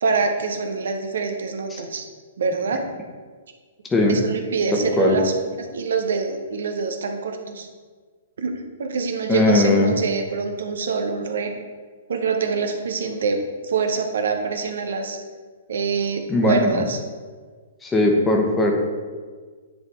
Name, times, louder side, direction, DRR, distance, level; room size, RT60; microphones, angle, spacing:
voice 1, 0.0-2.0 2.4-2.8 4.1-7.7 8.4-11.6 12.1-15.2 15.7-17.0, right 4 dB, 65° right, 5 dB, 0.7 m, -25 dB
voice 2, 4.7-5.2 9.3-9.9 16.3-16.8 17.8-18.7, left 2 dB, 15° left, 1 dB, 1.1 m, -19 dB
9.9 x 4.0 x 3.4 m, 1.5 s
figure-of-eight pair, 120°, 0 cm